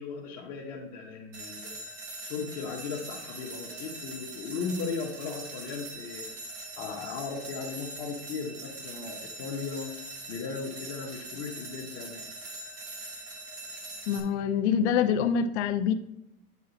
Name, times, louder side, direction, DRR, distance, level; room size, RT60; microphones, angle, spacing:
voice 1, 0.0-1.8 2.2-6.4 6.8-10.0 10.3-12.3, left 5 dB, 30° left, -4 dB, 0.8 m, -37 dB
sound 1, 1.3-14.2, right 2 dB, 15° right, 0.3 m, -42 dB
voice 2, 14.1-15.9, left 7 dB, 50° left, 9 dB, 0.6 m, -25 dB
8.5 x 4.0 x 3.9 m, 0.89 s
supercardioid pair, 175°, 44 cm